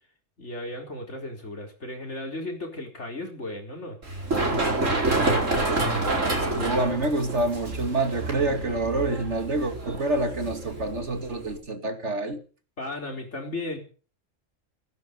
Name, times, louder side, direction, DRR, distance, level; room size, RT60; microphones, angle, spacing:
voice 1, 0.4-4.0 4.5-5.2 12.8-13.8, left 1 dB, 65° left, 4.8 m, -35 dB
Run, 4.0-11.6, right 2 dB, 80° right, 4.8 m, -28 dB
voice 2, 6.4-12.4, right 2 dB, 65° right, 2.6 m, -27 dB
17.0 x 15.5 x 5.4 m
omnidirectional pair, 1.3 m